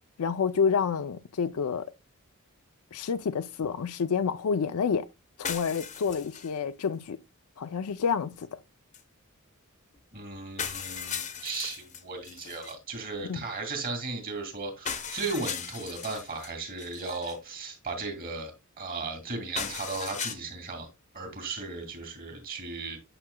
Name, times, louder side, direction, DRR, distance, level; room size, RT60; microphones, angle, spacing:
voice 1, 0.2-1.9 2.9-5.1 5.4-7.2 7.6-8.5 13.3-13.4, left 6 dB, 80° left, 0.4 m, -28 dB
sound 1, 5.4-6.5 6.8-6.9 8.9-9.0 9.9-10.0 10.6-12.8 14.9-16.5 16.8-17.4 19.6-20.4, left 7 dB, 35° left, 0.9 m, -37 dB
voice 2, 10.1-20.9 21.1-23.0, right 3 dB, 45° right, 2.3 m, -36 dB
8.8 x 5.9 x 2.2 m
head